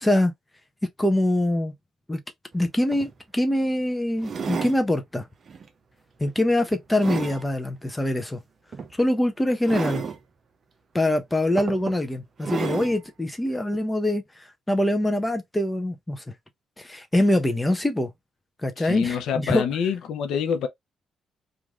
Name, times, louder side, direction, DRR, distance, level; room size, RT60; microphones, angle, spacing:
voice 1, 0.0-0.3 1.0-1.7 2.1-2.2 2.5-5.3 6.2-8.4 9.0-10.0 10.9-16.2 16.8-18.1 18.6-19.6, left 1 dB, 10° left, 0.6 m, -24 dB
sound 1, 2.5-2.6 2.9-3.1 4.2-4.8 5.5-5.7 6.2-7.4 8.7-8.9 9.6-10.2 11.0-11.1 11.6-12.0 12.4-13.0 13.7-13.8, right 6 dB, 45° right, 0.6 m, -32 dB
voice 2, 18.8-20.7, left 7 dB, 80° left, 0.6 m, -26 dB
3.1 x 2.5 x 2.3 m
cardioid pair, 90°, 0 cm